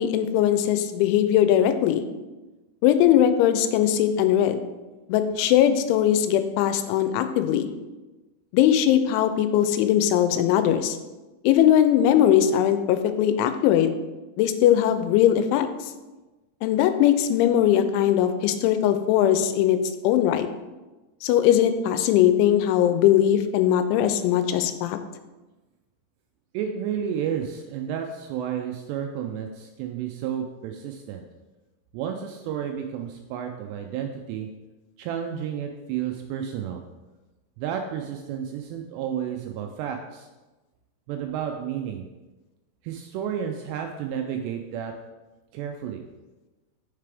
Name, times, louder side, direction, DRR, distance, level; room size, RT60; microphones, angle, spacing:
voice 1, 0.0-2.1 2.8-4.6 5.1-7.7 8.5-11.0 11.4-13.9 14.4-15.7 16.6-19.8 20.0-20.5 21.2-25.0, left 10 dB, 90° left, 9 dB, 3.0 m, -20 dB
voice 2, 26.5-31.2 31.9-34.5 35.0-36.8 37.6-40.3 41.1-42.1 42.8-44.9 45.5-46.0, right 8 dB, 85° right, 4 dB, 2.5 m, -31 dB
6.7 x 6.6 x 3.4 m, 1.1 s
omnidirectional pair, 5.3 m